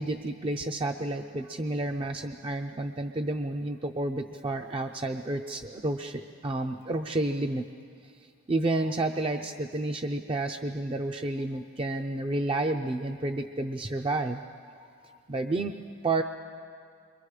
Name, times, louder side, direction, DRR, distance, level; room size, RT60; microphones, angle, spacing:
voice 1, 0.0-7.6 8.0-15.7 16.0-16.2, right 2 dB, 25° right, 5 dB, 0.5 m, -31 dB
28.0 x 23.5 x 4.9 m, 2.3 s
head